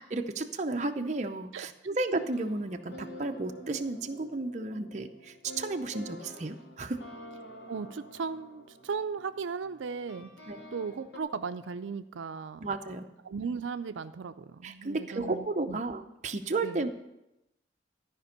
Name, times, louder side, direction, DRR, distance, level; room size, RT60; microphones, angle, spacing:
voice 1, 0.0-7.0 10.5-10.6 12.6-13.1 14.6-16.9, right 2 dB, 40° right, 6 dB, 0.6 m, -33 dB
sound 1, 2.2-11.2, equal, 65° left, 1.2 m, -48 dB
voice 2, 7.7-10.3 10.7-12.7 13.2-15.8 16.6-16.8, right 5 dB, 85° right, 10 dB, 0.4 m, -36 dB
13.0 x 5.2 x 6.6 m, 0.90 s
head